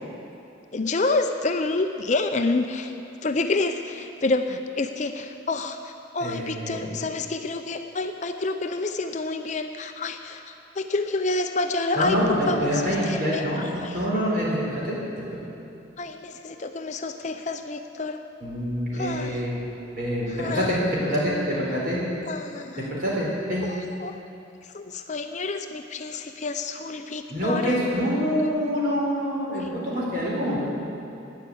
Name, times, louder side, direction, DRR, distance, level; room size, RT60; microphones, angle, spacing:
voice 1, 0.7-13.5 13.8-13.9 16.0-18.2 18.9-19.4 20.4-20.8 22.3-22.9 23.7-24.2 24.7-27.7, left 3 dB, 35° left, 7 dB, 0.5 m, -28 dB
voice 2, 6.2-6.8 11.9-15.0 18.4-19.5 19.9-22.0 22.9-23.7 27.3-30.6, equal, 45° right, -6 dB, 4.3 m, -26 dB
12.0 x 9.8 x 8.5 m, 2.7 s
head